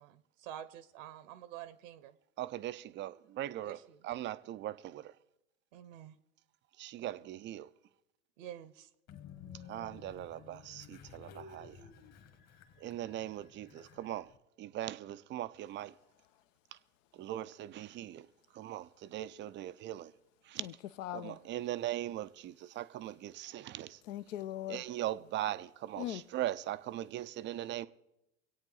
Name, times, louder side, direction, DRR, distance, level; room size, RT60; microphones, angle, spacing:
voice 1, 0.0-2.1 3.6-4.1 5.7-6.1 7.0-7.1 8.4-8.9, right 11 dB, 60° right, 1.0 m, -48 dB
voice 2, 2.4-3.8 4.0-5.0 6.8-7.7 9.7-11.7 12.8-14.3 14.6-15.9 17.2-18.2 18.6-20.1 20.5-20.7 21.1-24.0 24.7-27.9, right 13 dB, 25° right, 0.5 m, -40 dB
Train, 9.1-14.4, left 7 dB, 40° left, 1.7 m, -53 dB
voice 3, 20.6-21.4 24.0-24.8 26.0-26.2, left 13 dB, 60° left, 0.9 m, -40 dB
25.5 x 8.8 x 3.9 m
hypercardioid pair, 90°, 43 cm